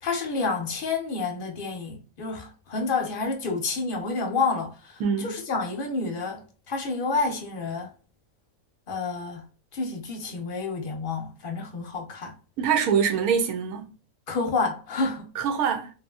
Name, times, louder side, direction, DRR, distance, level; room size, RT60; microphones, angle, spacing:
voice 1, 0.0-7.9 8.9-9.5 9.7-12.4 14.3-15.3, left 4 dB, 50° left, 0.8 m, -29 dB
voice 2, 5.0-5.4 12.6-13.9 15.4-15.9, right 7 dB, 80° right, 1.1 m, -24 dB
2.9 x 2.6 x 2.3 m
omnidirectional pair, 1.5 m